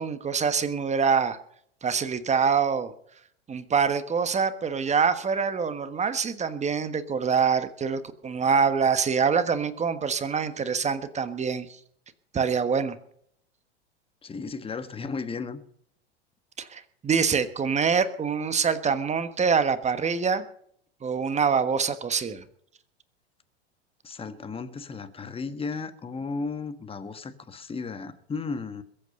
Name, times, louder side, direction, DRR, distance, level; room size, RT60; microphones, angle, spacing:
voice 1, 0.0-1.4 1.8-2.9 3.5-11.7 12.3-12.9 16.6-20.4 21.0-22.4, right 6 dB, 20° right, 1.4 m, -25 dB
voice 2, 14.2-15.6 24.0-28.8, left 4 dB, 15° left, 1.5 m, -34 dB
22.0 x 8.5 x 5.4 m
hypercardioid pair, 100°, 34 cm